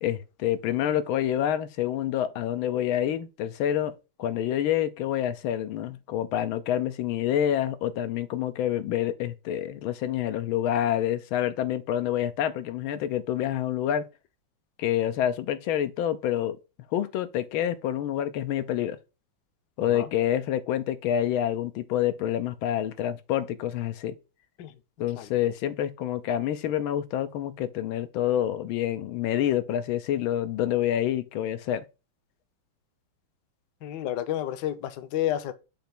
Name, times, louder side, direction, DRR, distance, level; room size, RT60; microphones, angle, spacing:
voice 1, 0.0-14.1 14.8-16.6 16.9-19.0 19.8-24.1 25.0-31.8, left 11 dB, 90° left, 1.5 m, -27 dB
voice 2, 19.8-20.1 24.6-24.7 25.0-25.5 33.8-35.5, left 12 dB, 65° left, 1.2 m, -31 dB
7.0 x 3.0 x 5.8 m
omnidirectional pair, 2.2 m